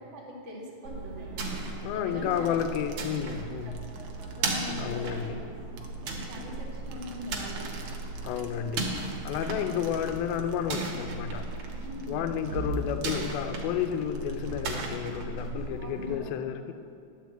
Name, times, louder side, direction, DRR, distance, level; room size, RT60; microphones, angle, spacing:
voice 1, 0.1-1.3 1.9-2.6 4.0-5.2 5.8-8.0 11.8-12.3 15.8-16.5, left 1 dB, 25° right, -4 dB, 1.5 m, -42 dB
sound 1, 0.8-16.1, right 3 dB, 60° right, 2.2 m, -36 dB
voice 2, 1.8-3.9 4.8-5.4 5.7-5.8 8.2-11.5 12.1-16.7, left 9 dB, 80° left, 7 dB, 2.3 m, -31 dB
sound 2, 2.1-5.3 5.8-15.0, right 6 dB, 85° right, 1.6 m, -53 dB
11.0 x 5.7 x 7.7 m, 2.6 s
omnidirectional pair, 4.5 m